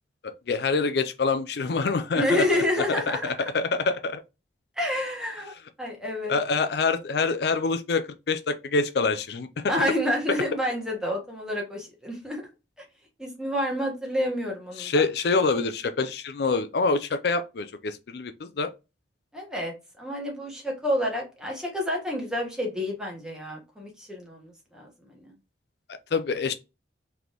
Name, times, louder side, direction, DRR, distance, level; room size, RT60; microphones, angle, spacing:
voice 1, 0.2-2.4 3.1-4.2 6.3-9.7 14.8-18.7 25.9-26.5, left 4 dB, 60° left, 0.4 m, -26 dB
voice 2, 2.2-3.2 4.8-5.5 5.8-6.4 9.7-12.4 13.2-14.9 19.3-25.3, left 1 dB, 5° right, 1.3 m, -29 dB
4.1 x 3.3 x 2.9 m
head